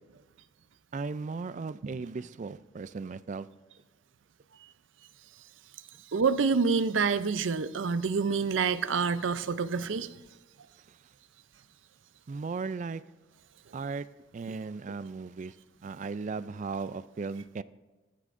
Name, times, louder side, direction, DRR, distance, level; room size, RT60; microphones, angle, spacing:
voice 1, 0.9-3.5 10.9-11.0 12.3-13.0 13.7-14.1 14.3-15.5 15.8-17.6, right 4 dB, 40° right, 16 dB, 0.3 m, -36 dB
voice 2, 6.1-10.1, right 5 dB, 90° right, 13 dB, 0.5 m, -27 dB
19.5 x 13.5 x 2.6 m, 1.2 s
head